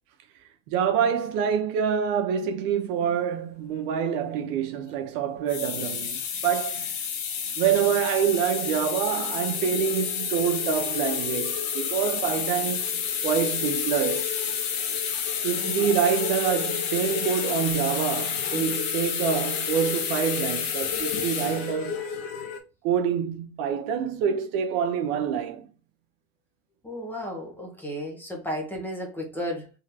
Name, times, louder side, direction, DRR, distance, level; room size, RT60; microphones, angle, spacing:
voice 1, 0.7-7.0 7.6-14.2 15.4-22.0 22.8-25.7, right 8 dB, 70° right, 0.8 m, -26 dB
sound 1, 5.4-22.6, left 7 dB, 80° left, 1.1 m, -29 dB
voice 2, 15.5-15.9 26.8-29.7, equal, 5° left, 0.9 m, -34 dB
3.9 x 3.0 x 2.7 m
cardioid pair, 165°, 30 cm